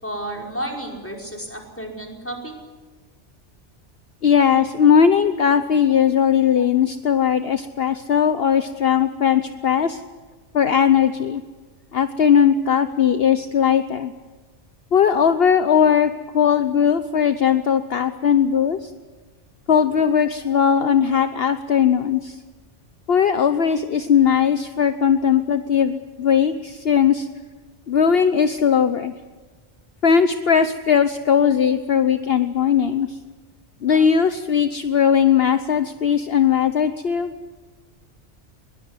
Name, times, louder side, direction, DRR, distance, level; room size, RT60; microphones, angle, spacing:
voice 1, 0.0-2.5, right 1 dB, 10° left, 0 dB, 5.2 m, -32 dB
voice 2, 4.2-10.0 10.5-11.4 11.9-14.1 14.9-18.9 19.7-22.4 23.1-27.3 27.9-29.1 30.0-33.2 33.8-37.3, left 7 dB, 55° left, 10 dB, 1.1 m, -18 dB
22.0 x 21.5 x 9.8 m, 1.3 s
omnidirectional pair, 1.2 m